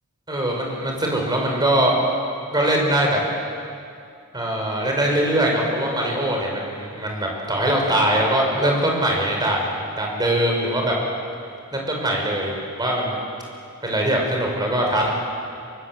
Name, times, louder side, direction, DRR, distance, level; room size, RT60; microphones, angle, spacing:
voice 1, 0.3-2.0 2.5-3.2 4.3-9.7 10.0-11.0 11.7-13.2 13.8-15.1, right 1 dB, 20° right, 0 dB, 5.8 m, -22 dB
28.5 x 24.0 x 8.0 m, 2.4 s
head